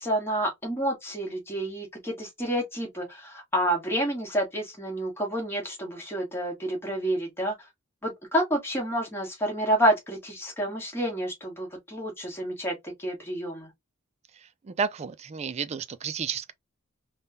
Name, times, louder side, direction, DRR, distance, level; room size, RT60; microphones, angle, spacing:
voice 1, 0.0-7.5 8.0-13.7, right 1 dB, 10° left, 1.3 m, -29 dB
voice 2, 14.6-16.5, right 6 dB, 30° right, 0.3 m, -31 dB
3.5 x 2.2 x 2.6 m
head